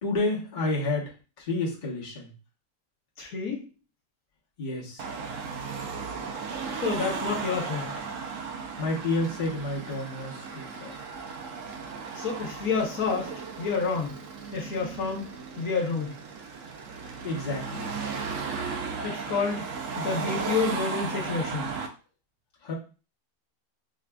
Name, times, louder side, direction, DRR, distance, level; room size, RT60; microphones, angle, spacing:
voice 1, 0.0-2.3 4.6-5.0 8.8-11.0 17.2-17.9 22.6-22.7, left 2 dB, 35° left, -5 dB, 1.0 m, -30 dB
voice 2, 3.2-3.6 6.8-7.9 12.1-13.3 13.6-14.2 14.5-15.2 15.6-16.2 19.0-19.6 20.0-21.7, left 5 dB, 70° left, -1 dB, 1.2 m, -29 dB
Car passing by / Traffic noise roadway noise / Engine, 5.0-21.9, right 5 dB, 70° right, 0.8 m, -35 dB
4.9 x 2.4 x 2.3 m, 0.35 s
omnidirectional pair, 1.6 m